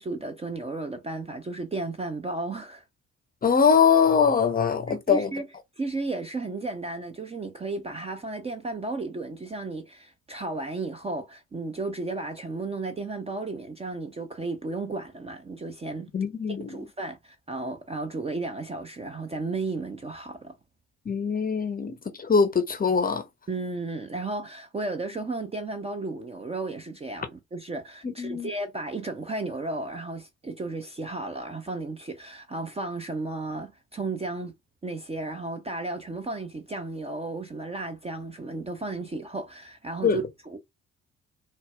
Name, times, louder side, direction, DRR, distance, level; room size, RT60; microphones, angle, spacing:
voice 1, 0.0-2.8 4.9-5.4 5.8-16.1 16.5-20.6 23.5-34.5 34.8-40.6, right 3 dB, 15° right, 0.5 m, -34 dB
voice 2, 3.4-5.3 16.1-16.7 21.1-23.2 28.2-28.5 40.0-40.2, left 6 dB, 25° left, 0.6 m, -22 dB
4.0 x 2.2 x 2.3 m
figure-of-eight pair, 45°, 36 cm